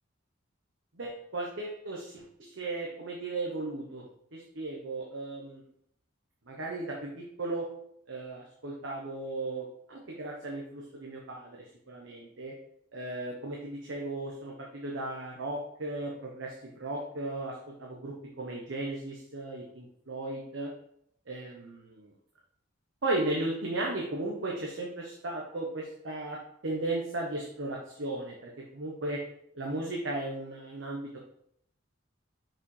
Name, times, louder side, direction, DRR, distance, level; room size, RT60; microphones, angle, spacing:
voice 1, 1.0-4.0 4.3-5.6 6.5-7.7 8.1-11.6 11.9-12.5 12.9-20.7 21.3-22.1 23.0-28.4 28.7-29.2 29.5-31.2, right 2 dB, 75° right, -1 dB, 1.0 m, -36 dB
6.0 x 4.9 x 3.3 m, 0.70 s
head